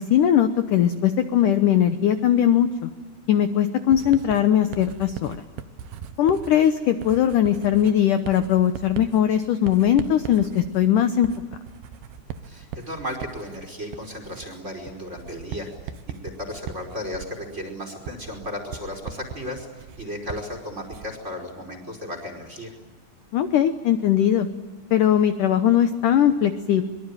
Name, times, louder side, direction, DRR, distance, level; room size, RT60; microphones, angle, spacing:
voice 1, 0.0-2.9 3.3-5.4 6.2-11.3 23.3-24.5 24.9-26.8, left 10 dB, 75° left, 9 dB, 1.9 m, -20 dB
Writing, 3.9-21.3, right 8 dB, 70° right, 2.9 m, -39 dB
voice 2, 12.4-22.7, left 1 dB, 15° right, 5 dB, 5.0 m, -35 dB
24.5 x 23.5 x 9.0 m, 1.3 s
omnidirectional pair, 5.2 m